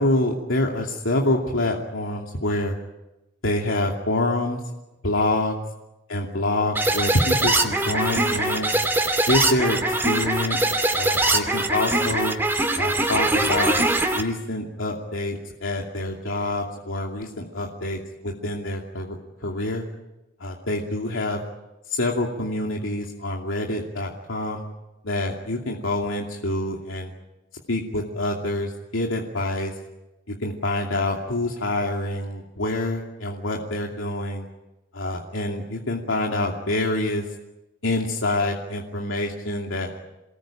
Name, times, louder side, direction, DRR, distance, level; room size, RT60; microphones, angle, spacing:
voice 1, 0.0-2.7 3.4-4.6 5.0-5.5 6.1-8.7 9.2-10.6 10.9-12.3 12.8-13.8 14.1-19.8 20.4-21.4 21.9-24.6 25.0-27.1 27.7-29.7 30.4-34.5 34.9-37.2 37.8-40.0, left 1 dB, 85° left, 0 dB, 2.7 m, -26 dB
sound 1, 6.8-14.2, right 2 dB, 10° right, 2.8 m, -22 dB
28.5 x 20.0 x 8.9 m, 1.0 s
head